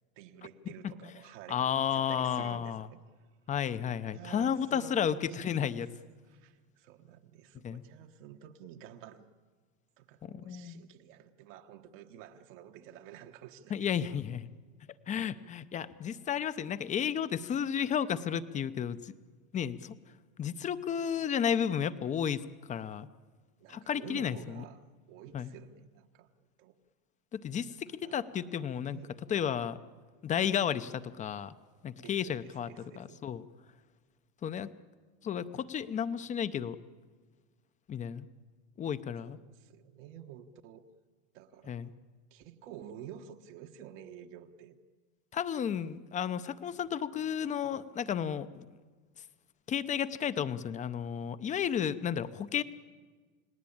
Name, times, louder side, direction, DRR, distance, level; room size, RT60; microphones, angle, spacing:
voice 1, 0.2-1.6 1.9-3.0 4.1-5.8 6.2-9.3 10.0-14.2 23.6-26.3 26.6-26.7 27.7-28.3 28.8-29.2 32.0-33.2 39.3-40.8 41.3-41.9 42.3-44.8, right 10 dB, 60° right, 4 dB, 1.4 m, -50 dB
voice 2, 1.5-2.9 3.5-5.9 7.6-7.8 10.2-10.8 13.7-14.5 15.1-19.1 19.5-19.9 20.4-22.4 22.7-23.1 23.7-24.6 25.3-25.5 27.3-29.0 29.3-29.8 30.2-31.5 31.8-32.7 33.0-33.4 34.4-34.7 35.2-36.8 37.9-38.3 38.8-39.4 41.7-41.9 45.3-48.7 49.7-52.6, left 8 dB, 15° left, 14 dB, 0.6 m, -32 dB
29.5 x 18.5 x 8.7 m, 1.5 s
supercardioid pair, 135°, 43 cm